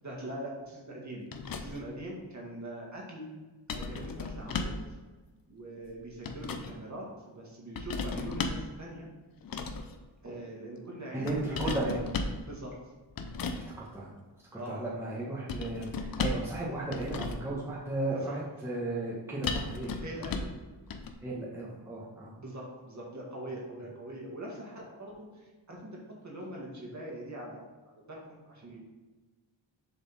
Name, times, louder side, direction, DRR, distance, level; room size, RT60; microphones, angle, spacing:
voice 1, 0.0-1.2 1.6-3.3 3.7-4.7 5.5-9.1 10.2-11.7 12.4-12.7 14.6-14.9 18.1-18.4 20.0-20.5 22.4-28.8, right 1 dB, 40° right, -3 dB, 1.9 m, -42 dB
sound 1, 1.3-1.9 3.7-4.9 5.9-6.7 7.8-8.7 9.4-9.9 11.3-12.4 13.2-13.6 15.5-16.5 16.9-17.5 19.4-20.6 20.9-21.1, left 4 dB, 50° left, 0.7 m, -35 dB
voice 2, 11.1-12.0 13.8-14.1 14.5-19.9 21.2-22.3, right 2 dB, 5° right, -5 dB, 1.2 m, -35 dB
7.0 x 4.1 x 4.1 m, 1.2 s
cardioid pair, 85°, 45 cm